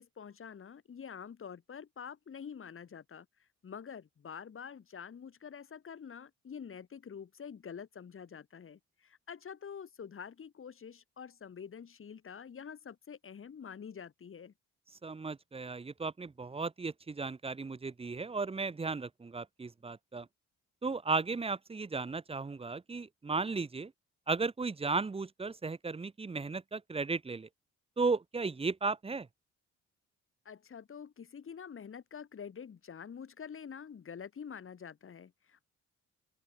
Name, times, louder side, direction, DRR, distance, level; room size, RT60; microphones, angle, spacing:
voice 1, 0.0-14.5 30.5-35.7, left 7 dB, 45° left, 3.6 m, -47 dB
voice 2, 15.0-20.3 20.8-23.9 24.3-27.5 28.0-29.3, right 4 dB, 20° right, 0.9 m, -35 dB
open air
cardioid pair, 90°, 30 cm